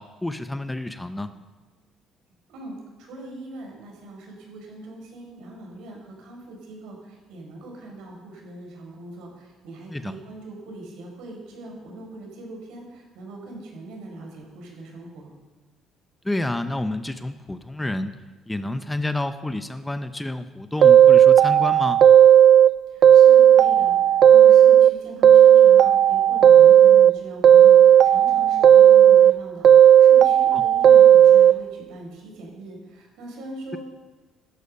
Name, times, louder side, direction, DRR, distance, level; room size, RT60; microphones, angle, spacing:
voice 1, 0.0-1.3 9.9-10.1 16.2-18.1 18.5-22.0 30.5-30.7, left 2 dB, 5° left, 10 dB, 0.6 m, -29 dB
voice 2, 2.5-15.3 22.9-33.8, right 2 dB, 85° right, 0 dB, 5.6 m, -41 dB
sound 1, 20.8-22.7 23.0-24.9 25.2-27.1 27.4-29.3 29.6-31.5, right 10 dB, 45° right, 0.5 m, -12 dB
16.0 x 13.5 x 5.5 m, 1.3 s
cardioid pair, 160°, 0 cm